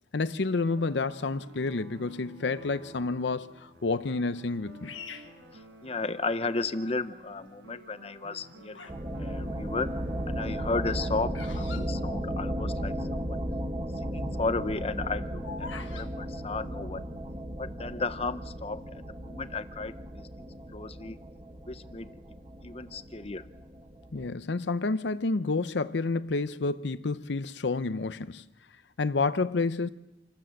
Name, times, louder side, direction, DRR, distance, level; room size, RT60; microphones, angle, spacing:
voice 1, 0.1-4.9 24.1-28.4 29.0-29.9, left 3 dB, 70° left, 0.6 m, -29 dB
sound 1, 0.6-11.3, equal, 75° right, 5.1 m, -51 dB
Bird vocalization bird call bird song, 4.8-6.3 7.0-7.4 8.2-9.1 9.4-12.9 13.1-13.2 13.4-13.8 14.2-16.1, left 6 dB, 90° left, 1.4 m, -45 dB
voice 2, 5.5-9.9 10.3-13.4 14.0-17.1 17.6-21.2 21.7-22.2 22.6-23.5, left 3 dB, 30° left, 0.8 m, -34 dB
sound 2, 8.9-24.3, equal, 25° right, 1.2 m, -35 dB
28.0 x 12.5 x 7.7 m
head